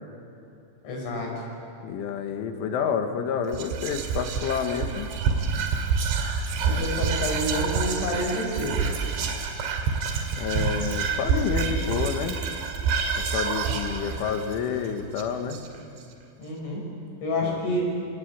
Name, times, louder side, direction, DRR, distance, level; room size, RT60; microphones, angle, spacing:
voice 1, 0.8-1.3 6.6-8.8 16.4-16.8 17.2-17.8, left 1 dB, 70° left, -1 dB, 8.2 m, -28 dB
voice 2, 1.8-5.1 10.4-12.4 13.3-15.6 17.4-17.6, left 6 dB, 85° left, 6 dB, 4.1 m, -29 dB
Whispering, 3.5-16.0, right 5 dB, 75° right, 4.3 m, -27 dB
29.0 x 19.0 x 9.5 m, 2.7 s
omnidirectional pair, 5.5 m